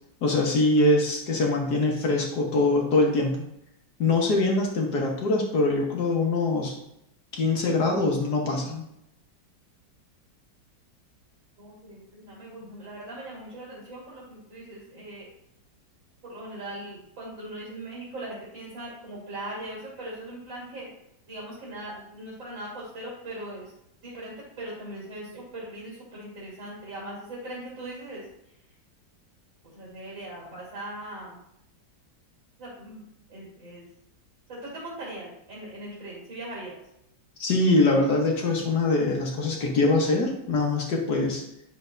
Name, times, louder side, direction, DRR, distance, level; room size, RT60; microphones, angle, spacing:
voice 1, 0.2-3.4 4.0-6.7 7.3-8.8 37.4-41.4, left 2 dB, 60° left, 0 dB, 1.8 m, -23 dB
voice 2, 11.6-15.3 16.2-21.0 21.3-23.7 24.0-28.2 29.6-31.4 32.6-33.0 33.3-33.9 34.5-36.8, right 1 dB, 85° right, -7 dB, 4.0 m, -40 dB
9.6 x 6.6 x 2.6 m, 0.78 s
omnidirectional pair, 2.0 m